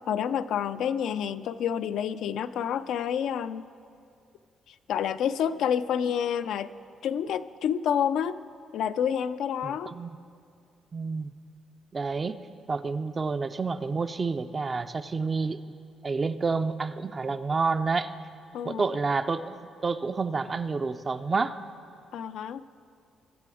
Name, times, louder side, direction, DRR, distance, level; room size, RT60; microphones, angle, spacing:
voice 1, 0.1-3.7 4.9-6.7 7.0-8.4 8.7-9.9 18.5-18.9 22.1-22.6, left 8 dB, 75° left, 12 dB, 0.4 m, -28 dB
voice 2, 9.6-10.2 10.9-11.3 11.9-12.4 12.7-15.6 16.0-18.1 18.6-21.6, right 4 dB, 35° right, 9 dB, 0.4 m, -29 dB
21.5 x 7.7 x 4.9 m, 2.4 s
cardioid pair, 90°, 0 cm